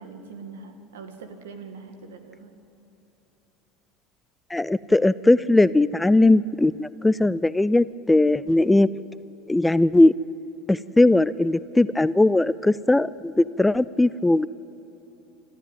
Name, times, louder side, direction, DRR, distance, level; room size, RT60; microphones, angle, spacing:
voice 1, 0.0-2.6, right 4 dB, 75° right, 7 dB, 2.1 m, -42 dB
voice 2, 4.5-8.9 9.5-10.1 10.7-14.5, left 2 dB, 10° left, 18 dB, 0.4 m, -19 dB
27.5 x 13.0 x 9.2 m, 2.8 s
hypercardioid pair, 80°, 0 cm